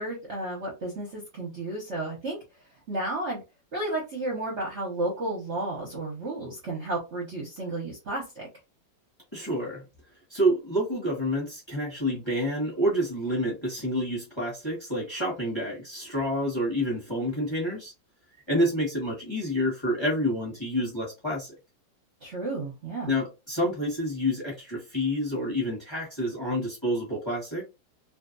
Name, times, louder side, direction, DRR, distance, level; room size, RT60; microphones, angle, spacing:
voice 1, 0.0-2.4 2.9-3.4 3.7-8.5 22.2-23.2, right 2 dB, 55° right, 0.8 m, -32 dB
voice 2, 9.3-9.8 10.3-17.9 18.5-21.5 23.1-27.6, equal, 20° left, 1.0 m, -28 dB
2.7 x 2.5 x 2.5 m
omnidirectional pair, 2.0 m